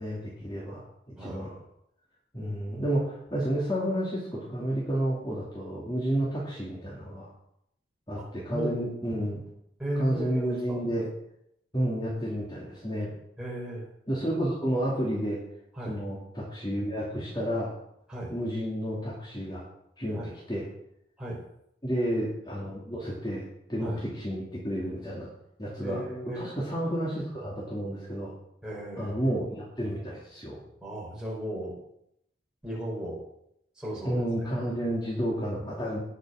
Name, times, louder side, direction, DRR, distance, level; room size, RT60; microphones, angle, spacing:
voice 1, 0.0-1.5 2.3-7.3 8.1-9.4 9.9-11.1 11.7-13.1 14.1-15.4 15.9-17.7 18.3-19.6 20.0-20.2 20.5-20.7 21.8-23.4 23.7-25.3 25.6-26.0 26.3-28.3 29.0-30.6 34.0-36.0, equal, 25° left, -5 dB, 2.7 m, -31 dB
voice 2, 9.8-10.8 13.4-13.9 15.8-15.9 18.1-18.3 20.1-20.3 21.2-21.4 23.8-24.0 25.8-26.4 28.6-29.2 30.8-31.7 32.6-33.2 33.8-34.2, equal, 5° right, -5 dB, 5.1 m, -35 dB
18.5 x 6.5 x 6.4 m, 0.78 s
head